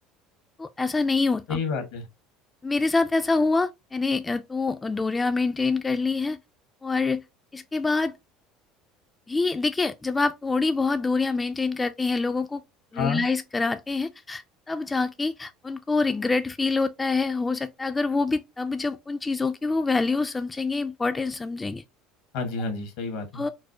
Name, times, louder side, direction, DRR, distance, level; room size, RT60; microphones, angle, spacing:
voice 1, 0.6-1.6 2.6-6.4 6.8-7.2 7.5-8.1 9.3-12.6 12.9-21.8 23.3-23.5, left 3 dB, 20° left, 0.3 m, -26 dB
voice 2, 1.5-2.1 12.9-13.3 22.3-23.4, left 5 dB, 75° left, 1.2 m, -29 dB
4.5 x 2.1 x 2.7 m
hypercardioid pair, 75°, 0 cm